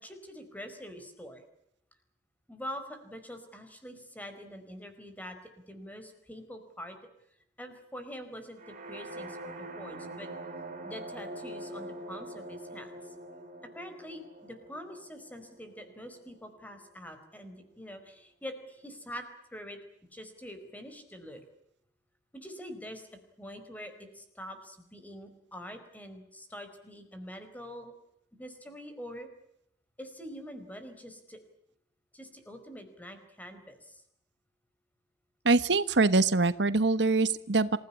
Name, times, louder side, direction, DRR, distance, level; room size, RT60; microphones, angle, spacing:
voice 1, 0.0-1.4 2.5-5.4 5.7-7.0 7.6-10.3 10.8-12.9 13.7-19.2 19.5-19.8 20.1-21.4 22.3-23.1 23.4-27.9 28.3-29.3 30.0-31.4 32.1-34.0, equal, 10° left, 7 dB, 4.7 m, -45 dB
sound 1, 8.6-16.4, right 1 dB, 50° right, 5.7 m, -44 dB
voice 2, 35.4-37.8, right 3 dB, 85° right, 14 dB, 1.2 m, -24 dB
27.0 x 16.0 x 9.8 m, 0.77 s
head